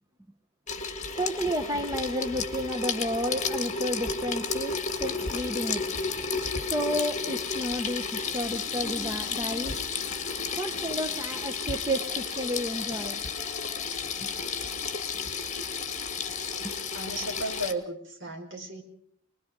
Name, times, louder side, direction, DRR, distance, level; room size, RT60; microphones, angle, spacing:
Water tap faucet / Sink (filling or washing), 0.7-17.7, left 5 dB, 35° left, 1.9 m, -32 dB
voice 1, 1.2-6.0 6.7-9.8 10.6-13.2 15.1-15.3 16.6-16.7, equal, 15° right, 7 dB, 0.9 m, -32 dB
voice 2, 16.9-18.8, right 1 dB, 55° right, 1 dB, 5.5 m, -34 dB
25.5 x 21.0 x 5.3 m, 0.63 s
head